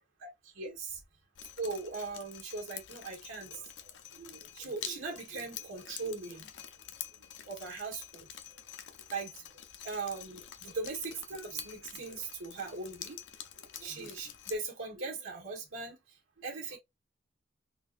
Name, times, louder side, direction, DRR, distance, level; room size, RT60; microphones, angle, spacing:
voice 1, 0.5-1.0 1.6-6.5 7.5-8.3 9.1-9.4 9.8-13.2 13.8-16.0 16.4-16.8, right 4 dB, 90° right, 1.4 m, -39 dB
Drip, 1.3-14.5, left 10 dB, 65° left, 0.5 m, -47 dB
3.8 x 2.7 x 2.5 m
head